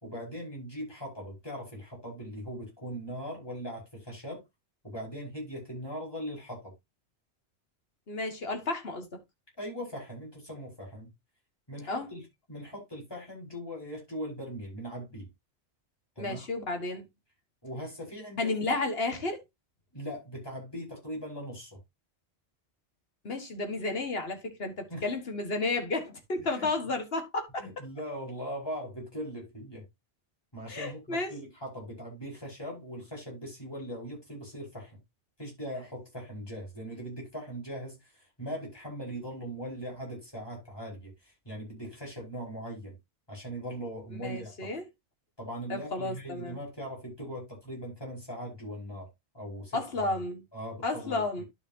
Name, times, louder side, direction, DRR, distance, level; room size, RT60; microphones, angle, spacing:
voice 1, 0.0-4.4 4.8-6.7 9.6-11.1 11.7-12.2 12.5-15.3 16.2-16.5 17.6-18.8 19.9-21.8 24.9-25.1 26.5-26.7 27.6-29.8 30.5-35.0 35.4-38.0 38.4-42.9 43.3-44.7 45.4-49.1 49.3-49.8 50.5-51.5, equal, 20° left, 5.3 m, -40 dB
voice 2, 8.1-9.2 11.9-12.1 16.2-17.0 18.4-19.4 23.2-27.6 30.7-31.3 44.1-44.8 45.7-46.6 49.7-50.4 50.8-51.4, left 3 dB, 60° left, 2.0 m, -32 dB
11.5 x 5.8 x 2.8 m
omnidirectional pair, 1.1 m